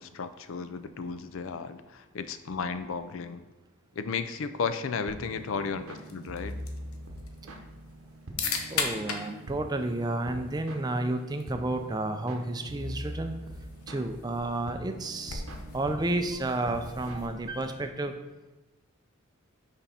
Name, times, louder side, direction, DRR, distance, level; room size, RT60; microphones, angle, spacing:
voice 1, 0.0-3.4 4.0-6.6, left 5 dB, 70° left, 11 dB, 0.4 m, -34 dB
sound 1, 5.1-17.9, equal, 85° right, 0.9 m, -43 dB
sound 2, 6.0-17.9, left 5 dB, 85° left, 0.8 m, -40 dB
voice 2, 8.7-13.3 13.9-15.4 15.7-18.1, right 2 dB, 20° right, 6 dB, 0.4 m, -31 dB
5.7 x 5.2 x 4.2 m, 1.1 s
head